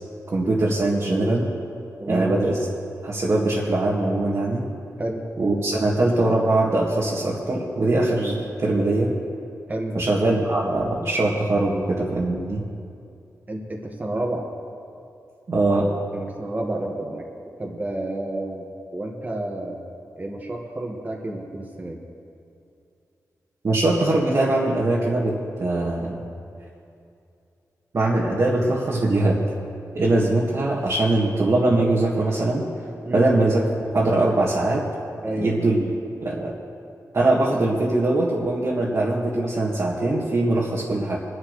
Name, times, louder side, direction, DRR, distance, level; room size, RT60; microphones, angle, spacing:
voice 1, 0.3-1.5 2.1-2.6 3.0-4.6 5.4-9.1 9.9-12.6 15.5-15.9 23.6-25.3 25.6-26.2 27.9-29.4 29.9-32.6 33.1-33.6 33.9-34.9 35.4-35.9 36.2-36.5 37.1-41.2, right 2 dB, 50° right, -6 dB, 1.9 m, -21 dB
voice 2, 2.0-2.3 5.0-5.2 9.7-10.0 13.5-14.4 16.1-17.3 17.6-19.8 20.2-22.0 33.0-33.3 35.2-35.5, right 1 dB, 25° right, 0 dB, 1.7 m, -30 dB
22.0 x 11.0 x 3.2 m, 2.6 s
wide cardioid pair, 95°, 6 cm